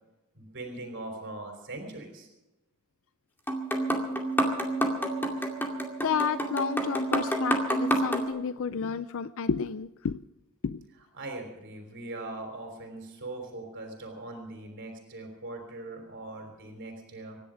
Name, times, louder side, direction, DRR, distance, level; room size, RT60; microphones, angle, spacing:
voice 1, 0.3-2.3 4.9-5.0 5.4-5.5 11.2-17.4, right 2 dB, 55° right, 3 dB, 3.5 m, -41 dB
sound 1, 3.5-8.3, right 1 dB, 10° left, 2.3 m, -29 dB
voice 2, 6.0-10.2 10.6-10.8, left 6 dB, 65° left, 13 dB, 0.5 m, -31 dB
25.5 x 10.5 x 5.1 m, 1.0 s
head